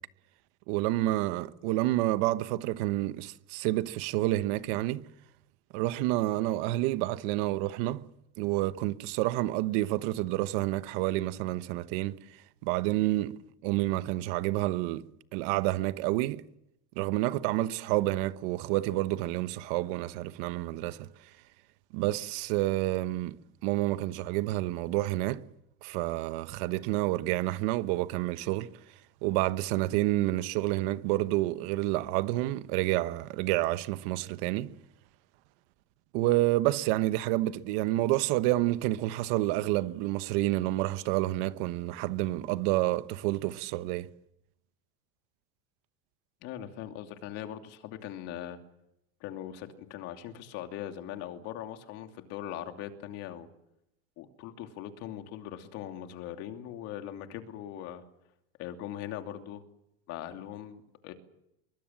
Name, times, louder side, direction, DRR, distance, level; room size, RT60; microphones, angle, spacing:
voice 1, 0.7-5.0 5.7-8.0 8.4-12.2 12.6-15.0 15.3-16.4 17.0-21.1 21.9-23.4 23.6-25.4 25.8-28.7 29.2-34.7 36.1-44.1, right 17 dB, 60° right, 1.1 m, -29 dB
voice 2, 46.4-48.6 49.2-53.5 54.2-58.0 58.6-59.6 60.1-61.1, left 11 dB, 50° left, 2.8 m, -40 dB
24.0 x 23.5 x 7.6 m
supercardioid pair, 150°, 32 cm